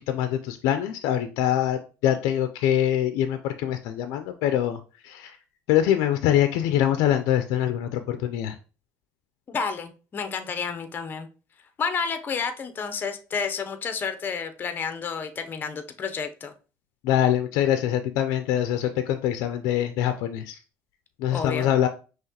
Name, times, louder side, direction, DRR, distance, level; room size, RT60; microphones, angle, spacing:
voice 1, 0.1-5.4 5.7-8.6 17.0-20.6 21.2-21.9, left 11 dB, 90° left, 9 dB, 0.4 m, -24 dB
voice 2, 9.5-11.3 11.8-16.5 21.3-21.7, left 5 dB, 35° left, 9 dB, 0.6 m, -30 dB
5.6 x 2.9 x 2.8 m, 0.34 s
cardioid pair, 115°, 6 cm